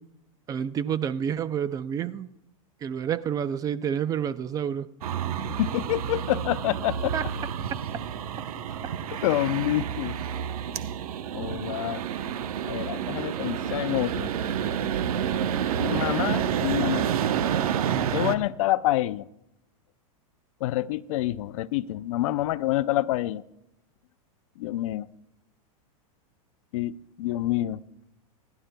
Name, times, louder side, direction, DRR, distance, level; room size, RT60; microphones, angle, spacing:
voice 1, 0.5-2.3 2.8-4.9 7.1-7.2, right 8 dB, 20° right, 15 dB, 0.4 m, -29 dB
sound 1, 5.0-18.4, right 9 dB, 85° right, 0.8 m, -29 dB
voice 2, 5.5-7.1 9.2-10.2 11.3-12.0 12.6-14.3 15.8-17.1 18.1-19.3 20.6-23.4 24.6-25.1 26.7-27.8, left 15 dB, 65° left, 16 dB, 0.5 m, -27 dB
28.0 x 11.5 x 2.2 m, 0.85 s
supercardioid pair, 140°, 18 cm